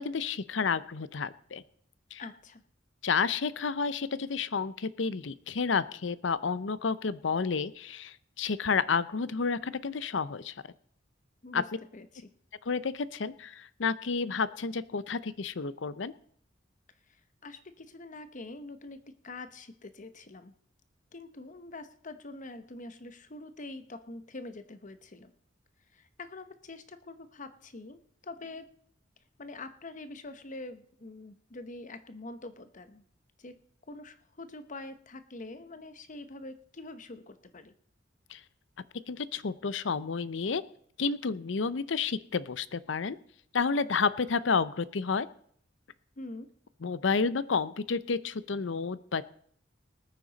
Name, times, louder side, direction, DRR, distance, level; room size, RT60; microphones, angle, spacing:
voice 1, 0.0-1.6 2.1-2.2 3.0-10.5 11.5-11.6 12.7-16.1 38.3-38.4 39.1-40.6 41.0-43.2 43.5-45.3 46.8-49.3, left 5 dB, 70° left, 16 dB, 0.6 m, -30 dB
voice 2, 2.2-2.6 11.4-11.7 11.9-12.3 17.1-20.5 21.1-25.3 25.9-28.7 29.4-33.0 33.4-33.6 33.9-37.7 46.2-46.5, left 2 dB, 40° left, 10 dB, 0.9 m, -45 dB
20.0 x 9.2 x 4.0 m, 0.64 s
head